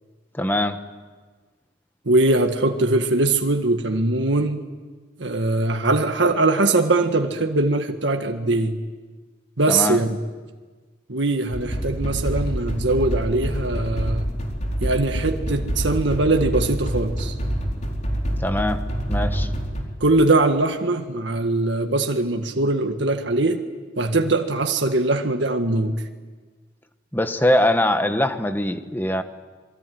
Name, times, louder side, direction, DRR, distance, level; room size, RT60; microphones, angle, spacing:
voice 1, 0.3-0.8 9.7-10.0 18.4-18.8 19.1-19.5 27.1-29.2, left 1 dB, 10° left, 8 dB, 1.3 m, -22 dB
voice 2, 2.1-4.6 5.2-8.8 9.6-10.2 11.1-14.3 14.8-17.3 20.0-23.6 24.0-26.0, right 2 dB, 85° right, 4 dB, 1.7 m, -21 dB
sound 1, 11.5-19.8, equal, 40° left, 4.4 m, -26 dB
27.0 x 23.5 x 9.4 m, 1.4 s
head